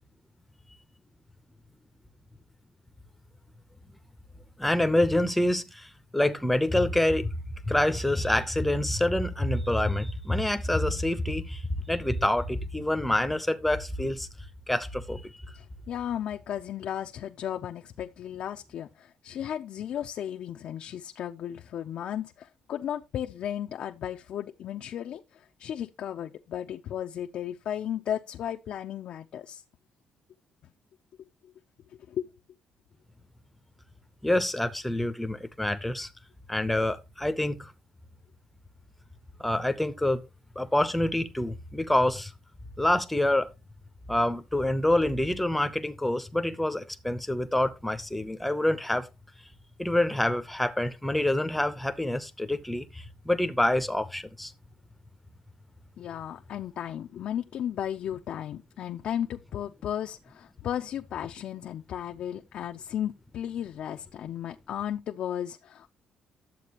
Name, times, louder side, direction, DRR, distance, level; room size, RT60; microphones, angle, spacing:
voice 1, 4.6-7.3 7.6-14.3 14.7-15.4 34.2-36.1 36.5-37.7 39.4-40.2 40.6-42.3 42.8-43.5 44.1-49.1 49.8-54.5, left 1 dB, 5° left, 0.8 m, -27 dB
voice 2, 15.5-29.6 32.1-32.3 56.0-65.9, left 10 dB, 65° left, 0.6 m, -35 dB
11.5 x 7.5 x 3.0 m
cardioid pair, 140°, 2 cm